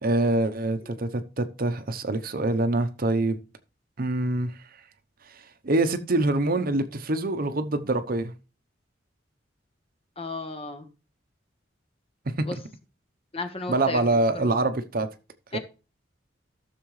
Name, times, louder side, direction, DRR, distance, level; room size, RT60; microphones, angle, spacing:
voice 1, 0.0-3.4 4.0-4.6 5.6-8.3 12.5-12.6 13.7-15.1 15.5-15.6, right 2 dB, 50° right, 0.8 m, -25 dB
voice 2, 10.2-10.9 12.5-12.6 13.3-14.7 15.5-15.6, left 3 dB, 30° left, 1.2 m, -35 dB
14.0 x 6.7 x 3.2 m
head